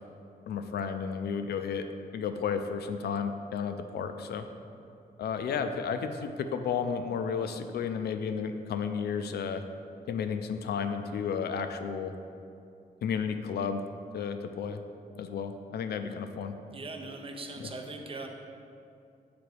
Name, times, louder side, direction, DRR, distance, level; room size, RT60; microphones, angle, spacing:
voice 1, 0.5-1.9 2.1-4.5 5.2-9.6 10.1-12.1 13.0-13.8 14.1-14.8 15.2-16.5 17.6-17.7, left 6 dB, 85° left, 8 dB, 0.4 m, -32 dB
voice 2, 16.7-18.3, right 2 dB, 35° right, 3 dB, 0.6 m, -40 dB
6.8 x 3.9 x 4.8 m, 2.6 s
wide cardioid pair, 145°, 16 cm